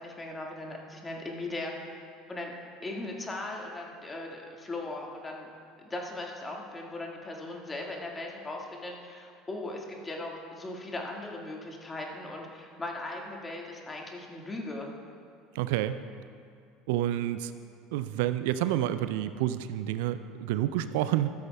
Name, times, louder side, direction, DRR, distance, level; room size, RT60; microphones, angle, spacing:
voice 1, 0.0-1.7 2.3-2.5 2.8-5.5 5.8-14.9, left 2 dB, 20° left, 0 dB, 1.7 m, -38 dB
voice 2, 15.6-15.9 16.9-17.5 17.9-21.3, right 13 dB, 65° right, 12 dB, 0.3 m, -29 dB
13.5 x 13.0 x 2.2 m, 2.3 s
figure-of-eight pair, 70°, 0 cm